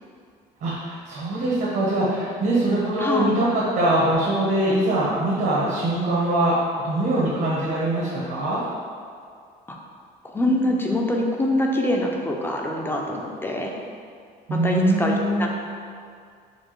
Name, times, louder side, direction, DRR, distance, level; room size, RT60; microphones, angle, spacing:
voice 1, 0.6-6.6 6.8-8.6 14.5-15.5, right 1 dB, 70° right, -7 dB, 1.0 m, -22 dB
voice 2, 3.0-3.3 9.7-9.8 10.2-13.7 14.5-15.5, left 1 dB, 15° left, 0 dB, 0.4 m, -24 dB
4.3 x 2.7 x 3.0 m, 2.2 s
cardioid pair, 110°, 17 cm